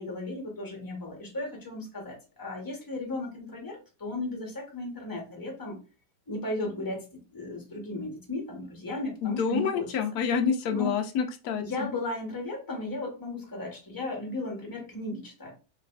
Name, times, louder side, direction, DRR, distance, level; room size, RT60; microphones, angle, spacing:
voice 1, 0.0-5.8 6.3-9.9 10.7-10.9 11.6-15.5, left 2 dB, 15° left, -1 dB, 1.1 m, -35 dB
voice 2, 9.2-11.6, left 6 dB, 70° left, 6 dB, 1.1 m, -27 dB
4.2 x 3.3 x 2.3 m, 0.32 s
omnidirectional pair, 1.9 m